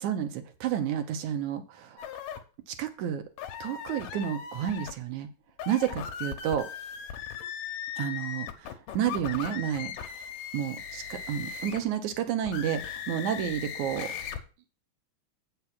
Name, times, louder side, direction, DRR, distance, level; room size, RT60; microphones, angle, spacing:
voice 1, 0.0-2.1 2.7-3.2 3.6-5.3 5.7-6.7 8.0-8.5 8.9-9.9 10.5-14.1, right 9 dB, 70° right, 8 dB, 2.2 m, -30 dB
sound 1, 2.0-2.4 3.4-4.9 5.5-11.9 12.4-14.4, left 8 dB, 80° left, 2.6 m, -38 dB
8.4 x 5.9 x 5.9 m, 0.34 s
omnidirectional pair, 3.9 m